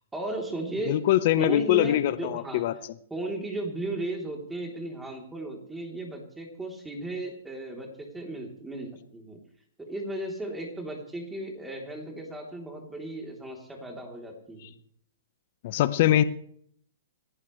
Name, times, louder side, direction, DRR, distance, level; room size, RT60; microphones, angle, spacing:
voice 1, 0.1-1.0 1.4-2.7 3.1-9.4 9.9-14.7, right 2 dB, 10° right, 1 dB, 3.5 m, -35 dB
voice 2, 0.9-2.7 15.6-16.2, left 13 dB, 55° left, 13 dB, 1.1 m, -23 dB
28.0 x 11.0 x 3.3 m, 0.63 s
hypercardioid pair, 125°, 0 cm